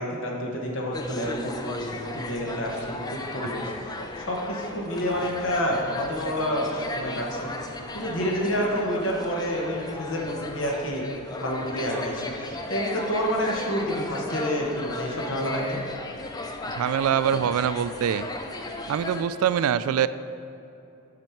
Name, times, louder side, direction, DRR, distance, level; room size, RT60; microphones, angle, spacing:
voice 1, 0.0-3.7 4.2-7.5 7.9-11.1 11.4-15.8, equal, 60° left, -1 dB, 1.3 m, -29 dB
sound 1, 0.9-19.2, left 2 dB, 20° left, 0.4 m, -35 dB
voice 2, 16.7-18.3 18.9-20.1, right 9 dB, 80° right, 16 dB, 0.3 m, -24 dB
7.5 x 5.3 x 4.6 m, 2.9 s
head